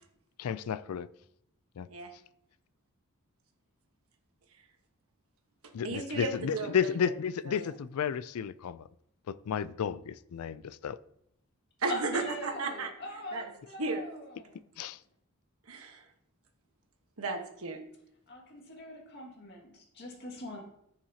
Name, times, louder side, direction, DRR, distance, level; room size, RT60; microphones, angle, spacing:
voice 1, 0.4-1.1 1.8-1.9 5.7-8.8 9.3-11.0 14.8-15.0, left 7 dB, 85° left, 0.4 m, -32 dB
voice 2, 5.6-7.0 7.4-7.7 11.8-12.9 13.3-13.5 13.8-14.0 15.7-16.0 17.2-17.8, right 3 dB, 75° right, 1.3 m, -34 dB
voice 3, 11.9-14.6 18.3-20.6, left 1 dB, 50° left, 2.0 m, -42 dB
14.0 x 5.9 x 2.8 m
head